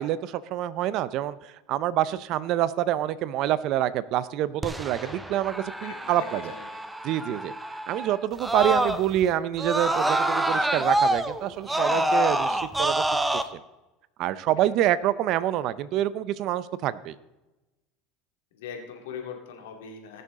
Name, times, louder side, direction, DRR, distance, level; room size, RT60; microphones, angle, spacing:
voice 1, 0.0-6.5 7.0-7.5 7.9-13.0 14.2-17.1, right 12 dB, 55° right, 16 dB, 0.6 m, -27 dB
Screaming, 4.6-9.2 9.6-13.4, right 1 dB, 5° right, 0.7 m, -26 dB
voice 2, 5.8-6.9 18.5-20.2, left 6 dB, 90° left, 2 dB, 2.3 m, -41 dB
19.0 x 6.9 x 3.7 m, 1.0 s
supercardioid pair, 110°, 0 cm